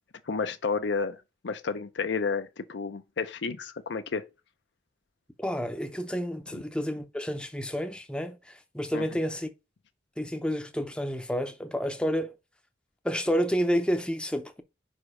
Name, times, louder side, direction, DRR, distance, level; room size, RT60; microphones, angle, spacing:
voice 1, 0.3-4.2 8.9-9.1, left 5 dB, 75° left, 0.5 m, -31 dB
voice 2, 5.4-9.5 10.2-12.3 13.0-14.6, equal, 5° left, 0.6 m, -30 dB
5.2 x 4.9 x 4.8 m
head